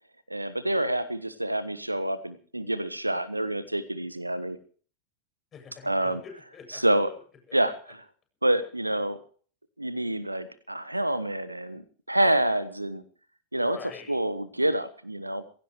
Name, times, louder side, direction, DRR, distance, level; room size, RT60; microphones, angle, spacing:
voice 1, 0.3-4.6 5.8-6.2 6.7-7.1 7.5-8.0 8.4-9.2 9.8-13.0 13.5-13.8 14.1-15.4, right 1 dB, 85° right, 15 dB, 1.3 m, -27 dB
voice 2, 5.5-6.8 7.1-7.2 7.5-7.6 13.6-14.2, left 7 dB, 25° left, 3 dB, 8.0 m, -45 dB
23.0 x 16.5 x 3.2 m, 0.43 s
figure-of-eight pair, 90°, 0 cm